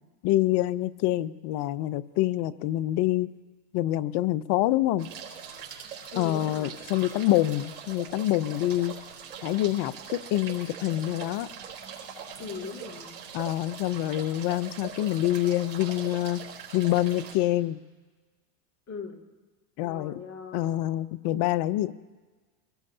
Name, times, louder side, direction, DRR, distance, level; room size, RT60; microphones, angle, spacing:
voice 1, 0.2-3.3 3.7-5.1 6.2-8.9 9.4-11.5 13.3-16.4 16.7-17.8 19.8-20.2 20.5-21.9, left 15 dB, 55° left, 16 dB, 0.7 m, -26 dB
sound 1, 5.0-17.3, right 7 dB, 90° right, 4.0 m, -42 dB
voice 2, 6.1-6.8 12.4-13.1 18.9-19.2 19.8-20.9, left 5 dB, 30° left, 2 dB, 2.4 m, -40 dB
24.5 x 18.5 x 2.8 m, 1.3 s
supercardioid pair, 105°, 49 cm